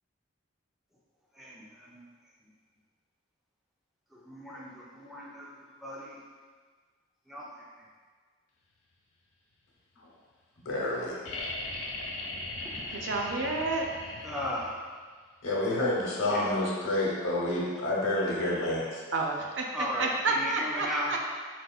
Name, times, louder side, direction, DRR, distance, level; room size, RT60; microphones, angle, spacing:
voice 1, 1.4-2.0 4.3-5.5 5.8-6.2 7.3-7.5 12.7-12.8 14.2-14.7 16.3-16.5 19.7-21.1, equal, ahead, -5 dB, 0.4 m, -36 dB
voice 2, 10.6-11.2 12.9-13.0 15.4-19.0, left 1 dB, 85° left, -4 dB, 0.8 m, -29 dB
sound 1, 11.2-15.0 16.7-16.8, left 2 dB, 70° left, 0.5 m, -38 dB
voice 3, 12.9-13.9 19.1-21.2, right 3 dB, 65° right, 1 dB, 0.4 m, -30 dB
4.1 x 2.5 x 2.3 m, 1.5 s
head